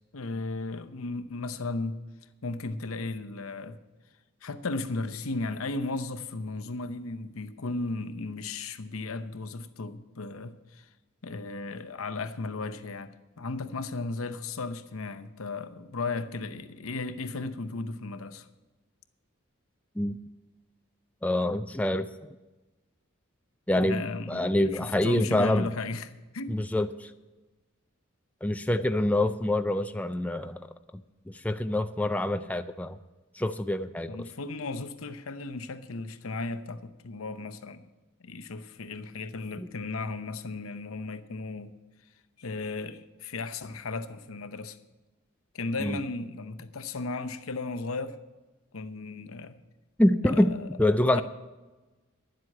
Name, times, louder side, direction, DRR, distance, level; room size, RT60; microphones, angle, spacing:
voice 1, 0.1-2.0 2.4-3.8 4.4-10.9 11.2-18.5 23.8-26.6 34.1-37.9 38.2-41.8 42.4-44.8 45.5-48.2 48.7-49.6 50.2-51.2, left 3 dB, 85° left, 0.8 m, -35 dB
voice 2, 21.2-22.4 23.7-25.7 26.5-27.1 28.4-30.6 30.9-33.0 33.3-34.3 39.6-39.7 45.8-46.0 50.0-51.2, left 1 dB, 5° left, 0.4 m, -26 dB
11.0 x 7.8 x 8.5 m
head